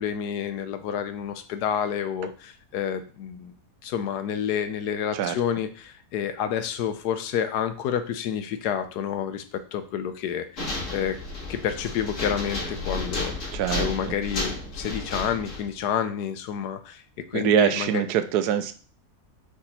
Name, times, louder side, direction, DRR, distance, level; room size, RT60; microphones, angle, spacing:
voice 1, 0.0-3.5 3.8-11.2 11.5-13.3 13.7-18.0, left 8 dB, 85° left, 10 dB, 1.3 m, -29 dB
sound 1, 10.6-15.8, left 2 dB, 55° left, 2.0 m, -32 dB
voice 2, 13.5-14.1 17.3-18.7, right 9 dB, 85° right, 10 dB, 1.2 m, -24 dB
4.9 x 4.8 x 4.2 m, 0.40 s
omnidirectional pair, 1.7 m